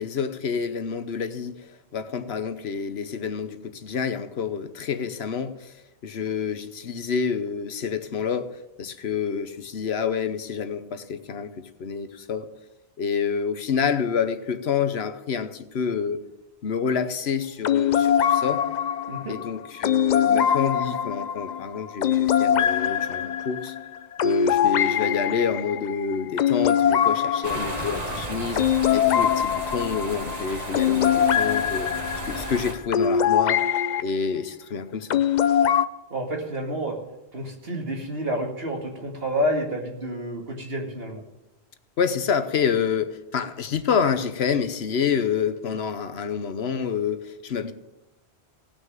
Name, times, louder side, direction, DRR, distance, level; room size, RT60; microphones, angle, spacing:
voice 1, 0.0-5.7 6.0-12.5 13.0-16.2 16.6-18.7 19.3-23.8 24.2-31.9 32.2-33.6 34.0-35.2 42.0-47.7, left 6 dB, 75° left, 11 dB, 1.1 m, -28 dB
sound 1, 17.6-34.0 35.1-35.9, left 9 dB, 55° left, 0.6 m, -23 dB
sound 2, 27.4-32.7, right 2 dB, 40° right, 1.4 m, -34 dB
voice 2, 36.1-37.0 37.3-41.2, equal, 65° right, 1 dB, 2.4 m, -29 dB
17.5 x 6.4 x 7.4 m, 0.98 s
omnidirectional pair, 1.1 m